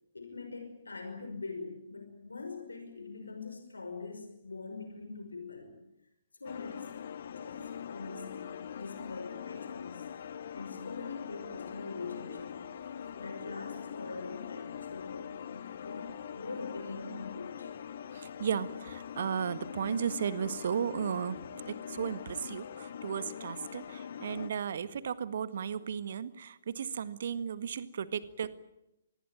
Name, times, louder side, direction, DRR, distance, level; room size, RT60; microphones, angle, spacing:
voice 1, 0.1-5.8 6.4-7.0 7.4-10.0 10.5-12.6 13.2-17.8, left 4 dB, 75° left, 6 dB, 5.6 m, -43 dB
sound 1, 6.4-24.5, left 8 dB, 50° left, 1.8 m, -43 dB
voice 2, 18.1-28.6, right 7 dB, 55° right, 13 dB, 1.7 m, -35 dB
26.0 x 20.5 x 9.2 m, 0.87 s
figure-of-eight pair, 130°, 0 cm